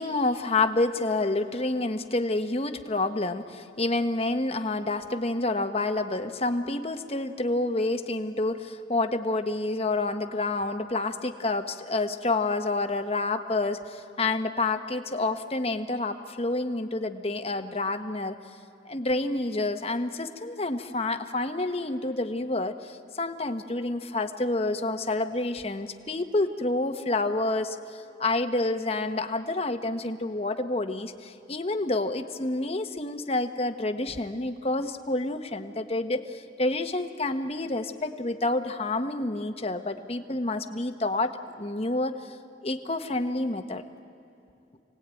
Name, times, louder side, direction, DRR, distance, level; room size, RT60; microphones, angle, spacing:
voice 1, 0.0-18.4 18.8-42.3 42.6-43.8, left 2 dB, 35° left, 7 dB, 1.1 m, -28 dB
27.5 x 19.0 x 9.1 m, 2.6 s
head